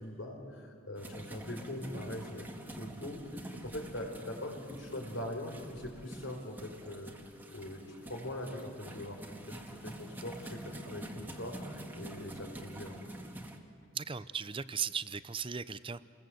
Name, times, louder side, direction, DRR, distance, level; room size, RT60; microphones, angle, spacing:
voice 1, 0.0-2.5 2.7-7.1 7.5-13.0, left 1 dB, 65° left, 2 dB, 4.6 m, -42 dB
sound 1, 1.0-13.6, right 1 dB, 10° right, 1.8 m, -47 dB
voice 2, 13.9-16.0, right 7 dB, 25° right, 15 dB, 0.5 m, -37 dB
29.5 x 21.0 x 7.9 m, 2.2 s
head